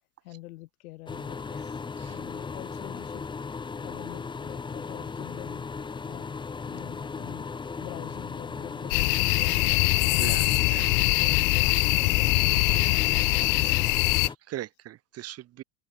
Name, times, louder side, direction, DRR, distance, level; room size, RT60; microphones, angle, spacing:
voice 1, 0.2-1.8 2.1-3.3 3.8-6.4 6.6-7.5 7.8-9.7 10.4-10.7 11.2-13.8, left 18 dB, 75° left, 3.6 m, -45 dB
sound 1, 1.1-14.3, left 5 dB, 10° left, 1.0 m, -37 dB
sound 2, 8.9-14.3, left 40 dB or more, 50° left, 0.6 m, -23 dB
voice 2, 10.1-10.9 14.0-15.6, right 14 dB, 35° right, 1.7 m, -40 dB
open air
supercardioid pair, 130°, 44 cm